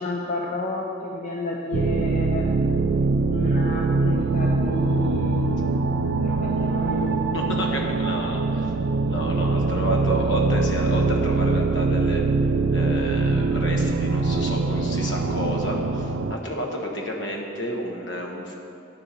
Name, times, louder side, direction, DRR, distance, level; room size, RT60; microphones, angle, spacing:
voice 1, 0.0-2.5 3.3-5.9 6.2-7.1, left 2 dB, 40° left, -1 dB, 0.7 m, -31 dB
sound 1, 1.7-16.4, right 3 dB, 65° right, 0.4 m, -23 dB
voice 2, 7.3-8.7 9.1-12.2 12.7-18.5, left 1 dB, 65° left, 1 dB, 1.3 m, -31 dB
9.6 x 6.9 x 5.5 m, 2.7 s
head